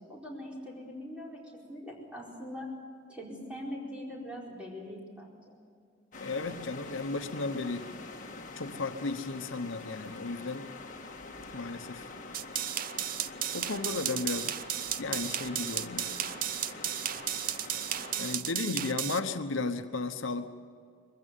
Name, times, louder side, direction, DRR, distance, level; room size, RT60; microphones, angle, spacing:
voice 1, 0.0-1.4 1.7-2.7 3.1-5.4, equal, 5° right, -4 dB, 4.6 m, -42 dB
sound 1, 6.1-18.4, left 3 dB, 40° left, 1.8 m, -45 dB
voice 2, 6.2-7.9 8.6-10.7 11.5-12.1 13.5-14.6 15.0-16.2 18.2-20.5, left 3 dB, 85° left, 9 dB, 1.0 m, -34 dB
sound 2, 12.3-19.2, right 11 dB, 45° right, 0.5 m, -34 dB
22.0 x 15.5 x 9.2 m, 2.2 s
head